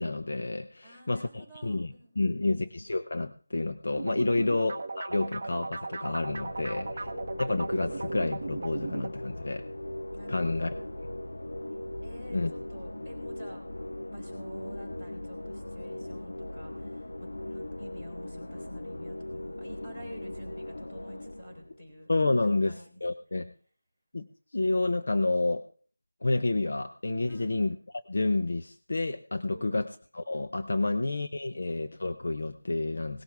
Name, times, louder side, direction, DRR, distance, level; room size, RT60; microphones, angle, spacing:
voice 1, 0.0-7.1 7.4-9.7 10.3-10.7 12.3-12.5 22.1-22.7 23.0-23.5 24.1-24.3 24.5-25.6 26.2-27.8 28.1-29.9 30.1-33.2, left 2 dB, 45° left, 8 dB, 0.7 m, -29 dB
voice 2, 0.8-2.6 4.3-4.6 10.1-11.0 12.0-13.6 14.1-22.1 22.4-22.9 27.3-27.6 29.5-29.8, equal, 10° left, -5 dB, 3.8 m, -49 dB
sound 1, 4.0-9.1, right 3 dB, 30° right, 0.7 m, -37 dB
sound 2, 6.3-21.8, left 1 dB, 90° left, 1.0 m, -39 dB
18.5 x 12.0 x 3.5 m, 0.43 s
figure-of-eight pair, 180°, 0 cm